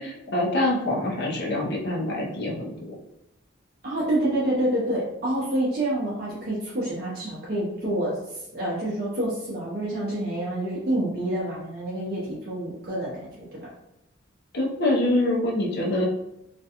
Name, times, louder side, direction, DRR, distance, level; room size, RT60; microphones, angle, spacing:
voice 1, 0.0-2.7 14.5-16.1, left 1 dB, 55° left, -2 dB, 0.6 m, -25 dB
voice 2, 3.8-13.3 13.6-13.7, right 1 dB, 45° right, -7 dB, 0.6 m, -27 dB
2.4 x 2.2 x 2.8 m, 0.86 s
head